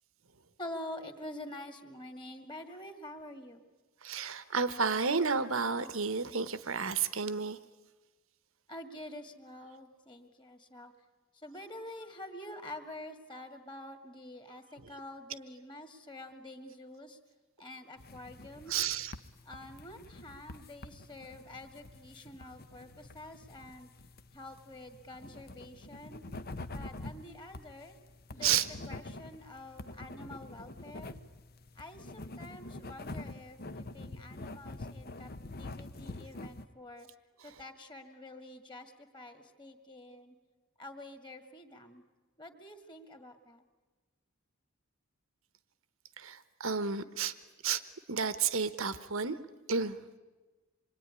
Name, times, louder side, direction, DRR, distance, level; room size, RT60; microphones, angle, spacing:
voice 1, 0.6-3.6 8.7-10.9 11.3-17.2 17.6-18.9 19.5-23.9 24.3-26.2 26.7-28.0 28.3-28.6 28.9-31.2 31.8-35.3 35.6-37.1 37.4-40.3 40.8-42.0 42.4-43.6, left 1 dB, 20° left, 6 dB, 2.2 m, -47 dB
voice 2, 4.0-7.6 18.7-19.1 28.4-28.7 37.4-37.5 46.2-47.3 47.6-47.8 48.1-49.4 49.7-50.0, right 5 dB, 70° right, 12 dB, 1.2 m, -31 dB
sound 1, 18.0-36.6, left 2 dB, 45° left, 0.9 m, -46 dB
26.5 x 22.5 x 9.9 m, 1.3 s
head